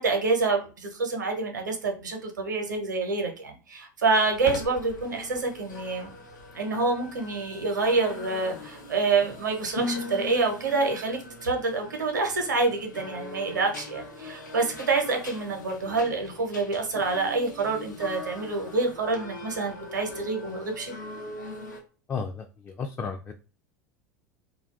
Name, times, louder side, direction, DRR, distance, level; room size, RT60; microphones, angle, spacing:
voice 1, 0.0-6.1 6.5-20.9, right 3 dB, 80° right, 3 dB, 0.8 m, -27 dB
sound 1, 4.2-21.8, left 3 dB, 85° left, 0.7 m, -41 dB
voice 2, 22.1-23.3, left 5 dB, 20° left, 4 dB, 0.3 m, -33 dB
2.4 x 2.3 x 2.3 m, 0.35 s
figure-of-eight pair, 80°, 10 cm